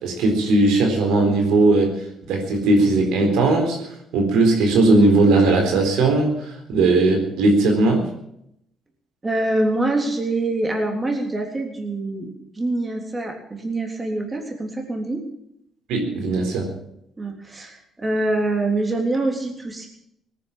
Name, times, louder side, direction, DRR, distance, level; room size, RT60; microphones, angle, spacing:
voice 1, 0.0-1.9 2.2-8.1 15.9-16.7, right 2 dB, 85° right, 3 dB, 4.0 m, -18 dB
voice 2, 9.2-15.2 17.2-19.9, right 2 dB, 20° right, 2 dB, 3.4 m, -25 dB
18.5 x 10.0 x 7.4 m, 0.76 s
cardioid pair, 95°, 0 cm